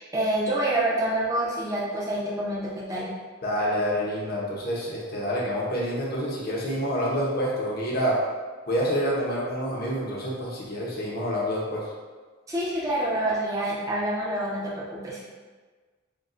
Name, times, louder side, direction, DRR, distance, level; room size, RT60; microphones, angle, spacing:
voice 1, 0.0-3.1 12.5-15.3, right 1 dB, 15° right, -6 dB, 0.8 m, -27 dB
voice 2, 3.4-8.2 8.7-11.8, equal, 45° left, -5 dB, 0.8 m, -27 dB
6.6 x 2.3 x 2.5 m, 1.4 s
head